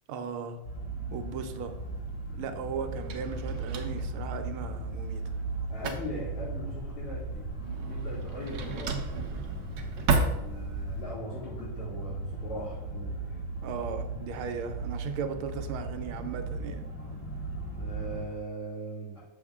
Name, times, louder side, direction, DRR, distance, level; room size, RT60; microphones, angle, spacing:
voice 1, 0.1-0.6 1.1-1.7 2.4-5.2 13.6-16.8, right 6 dB, 80° right, 7 dB, 1.6 m, -37 dB
sound 1, 0.6-18.3, right 2 dB, 35° left, 0.6 m, -37 dB
Drawer open or close, 1.7-11.0, right 4 dB, 60° right, 1.1 m, -35 dB
voice 2, 5.7-13.4 17.0-17.2 17.7-19.2, right 1 dB, 85° left, -14 dB, 3.9 m, -41 dB
7.0 x 5.9 x 3.6 m, 1.0 s
omnidirectional pair, 2.3 m